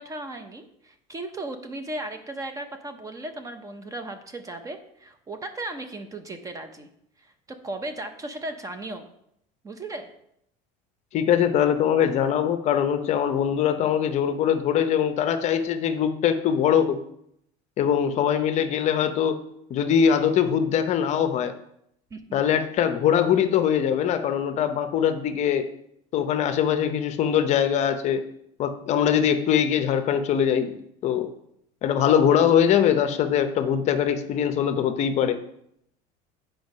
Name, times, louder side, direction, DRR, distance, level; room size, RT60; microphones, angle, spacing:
voice 1, 0.0-6.9 7.2-9.1 9.6-10.1 22.1-22.4, right 2 dB, 20° right, 8 dB, 0.7 m, -36 dB
voice 2, 11.1-17.0 17.8-19.4 19.7-21.5 22.3-25.7 26.1-28.2 28.6-30.7 31.0-31.3 31.8-35.4, left 8 dB, 40° left, 9 dB, 0.7 m, -22 dB
7.8 x 4.6 x 5.4 m, 0.74 s
cardioid pair, 140°, 17 cm